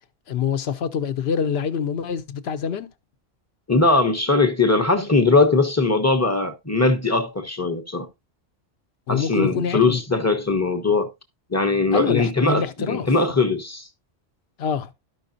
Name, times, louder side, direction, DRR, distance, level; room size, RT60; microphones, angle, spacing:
voice 1, 0.3-2.9 9.1-10.0 11.9-13.1 14.6-14.9, left 7 dB, 65° left, 0.9 m, -25 dB
voice 2, 3.7-8.1 9.1-11.1 11.5-13.9, left 3 dB, 15° left, 0.7 m, -20 dB
12.5 x 5.3 x 2.6 m
omnidirectional pair, 1.2 m